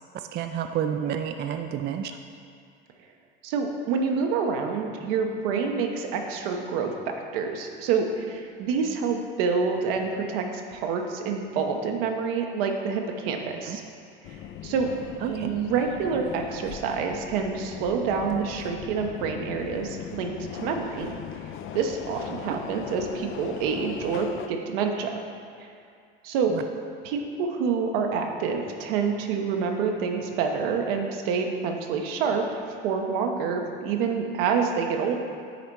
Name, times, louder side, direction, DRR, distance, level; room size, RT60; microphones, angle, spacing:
voice 1, 0.3-2.2 13.7-13.8 15.2-15.5 22.4-22.6 26.5-26.7, right 9 dB, 35° right, 7 dB, 0.4 m, -30 dB
voice 2, 3.4-13.8 14.6-14.9 15.3-21.1 21.7-25.1 25.6-25.7 26.2-26.6 27.0-32.4 32.8-35.2, right 5 dB, 70° right, 3 dB, 0.9 m, -27 dB
Subway metro underground, 14.2-24.5, left 9 dB, 45° left, 0.5 m, -39 dB
9.3 x 4.1 x 4.6 m, 2.4 s
hypercardioid pair, 75°, 29 cm